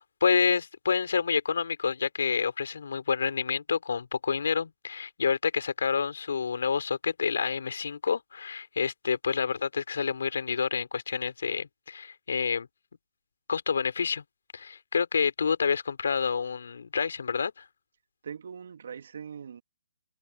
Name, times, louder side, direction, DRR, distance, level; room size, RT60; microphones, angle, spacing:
voice 1, 0.0-12.7 13.5-14.2 14.5-17.6, left 6 dB, 70° left, 3.9 m, -28 dB
voice 2, 18.2-19.6, right 7 dB, 60° right, 3.1 m, -41 dB
open air
hypercardioid pair, 150°, 0 cm